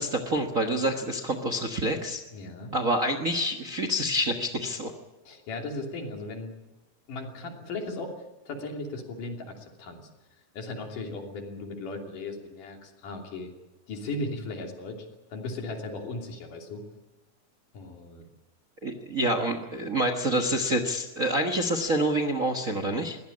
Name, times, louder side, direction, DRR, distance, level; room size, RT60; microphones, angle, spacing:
voice 1, 0.0-2.2 2.7-4.9 18.8-23.2, right 1 dB, 45° right, 7 dB, 1.0 m, -27 dB
voice 2, 2.3-2.8 5.3-6.6 7.1-8.1 8.5-10.1 10.5-13.5 13.9-16.8 17.7-18.3, left 2 dB, 85° left, 2 dB, 4.5 m, -37 dB
21.5 x 17.0 x 8.6 m, 1.1 s
omnidirectional pair, 3.6 m